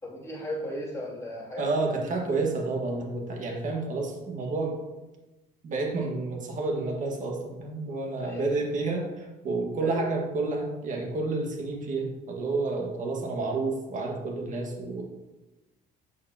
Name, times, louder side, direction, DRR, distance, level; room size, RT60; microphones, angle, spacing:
voice 1, 0.0-1.7 2.0-2.2 8.2-8.5 9.8-10.0, left 1 dB, 15° left, -6 dB, 2.7 m, -36 dB
voice 2, 1.6-4.8 5.6-15.0, right 3 dB, 50° right, 0 dB, 1.7 m, -30 dB
8.3 x 6.5 x 2.9 m, 1.1 s
cardioid pair, 110°, 17 cm